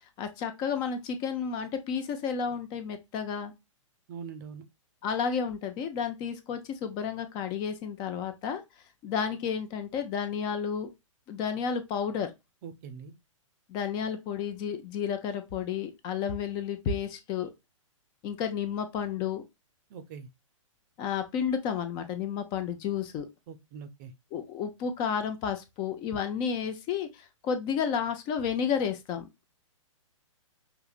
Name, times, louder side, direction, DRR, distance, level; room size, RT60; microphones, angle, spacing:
voice 1, 0.2-3.5 5.0-8.6 9.0-10.9 11.3-12.3 13.7-17.5 18.2-19.5 21.0-23.3 24.3-29.3, left 7 dB, 25° left, 0.7 m, -31 dB
voice 2, 4.1-4.6 12.6-13.1 19.9-20.3 23.5-24.1, right 6 dB, 35° right, 0.7 m, -42 dB
5.6 x 2.8 x 2.5 m
figure-of-eight pair, 115°, 17 cm